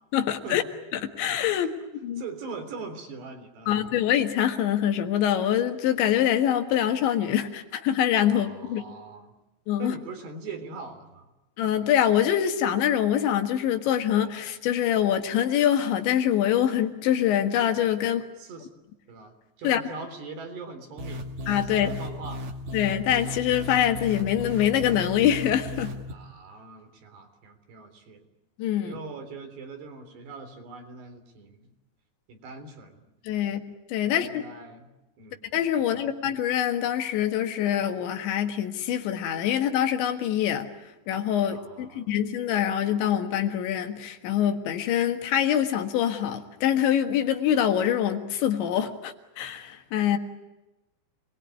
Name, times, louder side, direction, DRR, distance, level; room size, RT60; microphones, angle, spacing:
voice 1, 0.1-0.6 0.9-1.7 2.0-2.2 3.7-8.9 9.7-10.0 11.6-18.2 19.6-19.8 21.5-21.9 22.7-26.0 28.6-28.9 33.3-33.6 33.9-34.4 35.5-40.7 41.1-50.2, left 10 dB, 75° left, 6 dB, 3.9 m, -24 dB
voice 2, 2.2-3.9 8.3-9.4 9.8-11.3 18.4-18.7 19.1-21.3 21.7-22.5 26.1-28.2 28.8-31.7 32.3-33.1 34.0-35.4 35.9-36.1 41.5-42.1, right 4 dB, 65° right, 6 dB, 5.6 m, -42 dB
sound 1, 21.0-26.1, left 1 dB, 45° right, 3.2 m, -35 dB
28.5 x 21.5 x 9.6 m, 1.0 s
omnidirectional pair, 5.4 m